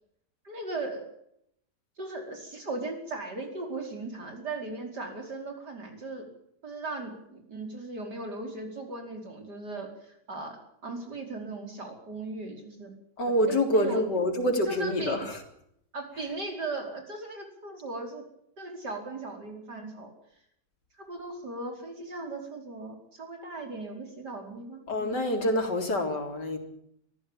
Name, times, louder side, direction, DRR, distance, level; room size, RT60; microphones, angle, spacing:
voice 1, 0.4-1.0 2.0-6.3 6.6-10.6 10.8-12.9 13.5-14.1 14.7-15.2 15.9-18.2 18.6-20.1 21.0-24.8, right 3 dB, 75° right, 3 dB, 5.7 m, -37 dB
voice 2, 13.2-15.4 24.9-26.6, left 1 dB, 90° left, 4 dB, 4.3 m, -26 dB
23.0 x 15.0 x 9.0 m, 0.74 s
omnidirectional pair, 1.8 m